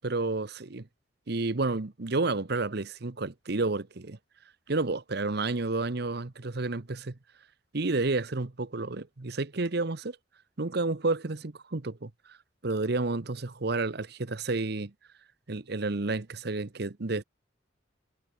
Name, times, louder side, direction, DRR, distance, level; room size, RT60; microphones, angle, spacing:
voice 1, 0.0-0.9 1.3-4.2 4.7-7.2 7.7-10.2 10.6-12.1 12.6-14.9 15.5-17.2, right 3 dB, 60° right, 1.0 m, -30 dB
head